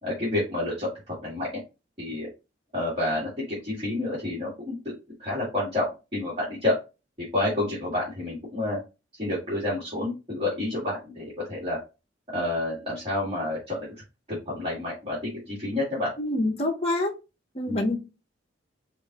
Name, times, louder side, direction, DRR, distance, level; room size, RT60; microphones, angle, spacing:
voice 1, 0.0-1.5 2.0-2.3 2.7-4.9 5.2-5.9 6.1-6.7 7.2-8.8 9.2-11.8 12.3-13.9 14.3-16.1 17.7-17.8, left 2 dB, 30° right, -8 dB, 1.8 m, -29 dB
voice 2, 16.2-17.2 17.6-18.0, left 1 dB, 35° left, 3 dB, 0.8 m, -26 dB
5.1 x 2.5 x 2.8 m, 0.28 s
head